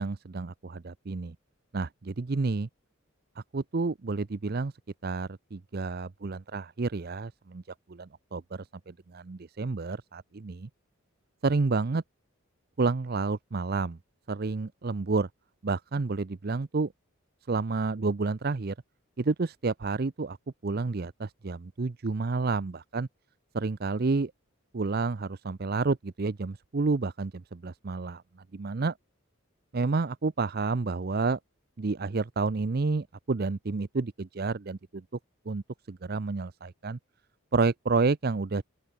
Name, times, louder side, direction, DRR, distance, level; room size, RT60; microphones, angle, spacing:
voice 1, 0.0-1.4 1.7-2.7 3.4-4.7 5.0-7.6 7.9-10.7 11.4-12.0 12.8-14.0 14.3-15.3 15.6-16.9 17.5-18.7 19.2-20.4 20.6-23.1 23.5-24.3 24.7-28.2 28.5-28.9 29.7-31.4 31.8-35.0 35.5-37.0 37.5-38.6, right 3 dB, 45° right, 0.5 m, -30 dB
open air
head